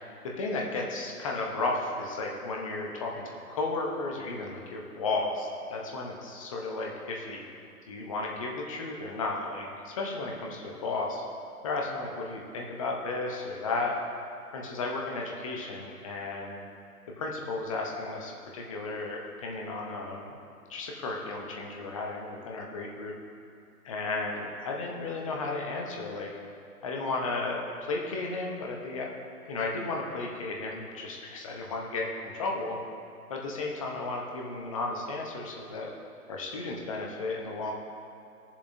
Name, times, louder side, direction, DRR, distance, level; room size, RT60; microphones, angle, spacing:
voice 1, 0.4-7.4 7.9-11.2 11.6-13.9 14.5-16.6 17.2-20.4 20.7-23.1 23.8-26.3 26.8-29.1 29.5-32.8 33.3-35.9 36.3-37.7, left 3 dB, 20° left, -1 dB, 0.8 m, -34 dB
16.5 x 7.1 x 2.7 m, 2.5 s
figure-of-eight pair, 145°, 47 cm